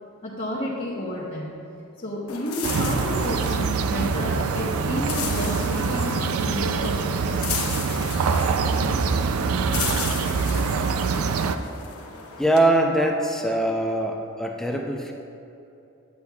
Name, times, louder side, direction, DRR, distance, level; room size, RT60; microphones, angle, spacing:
voice 1, 0.2-1.5 2.0-7.4, left 1 dB, 35° left, -7 dB, 1.0 m, -31 dB
sound 1, 2.3-12.6, left 6 dB, 75° left, 0.9 m, -35 dB
sound 2, 2.6-11.6, right 5 dB, 75° right, 0.4 m, -24 dB
voice 2, 12.4-15.1, right 1 dB, ahead, 1 dB, 0.5 m, -22 dB
9.7 x 8.5 x 2.3 m, 2.8 s
head